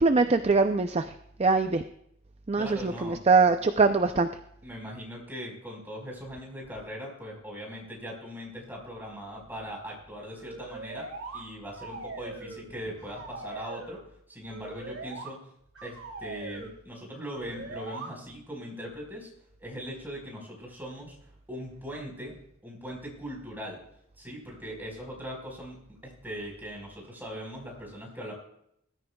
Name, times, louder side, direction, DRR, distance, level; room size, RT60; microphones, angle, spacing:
voice 1, 0.0-1.8 2.5-4.3, right 4 dB, 30° right, 8 dB, 0.5 m, -23 dB
voice 2, 2.5-3.2 4.6-11.1 11.3-15.4 15.8-19.3 19.6-21.2 21.5-22.4 22.6-23.8 24.2-28.3, equal, 10° right, -1 dB, 4.5 m, -40 dB
sound 1, 10.3-11.4 11.8-12.7 13.0-14.0 14.5-15.3 15.7-16.7 17.3-18.1, right 3 dB, 80° right, 3.0 m, -41 dB
21.0 x 13.5 x 2.3 m, 0.73 s
head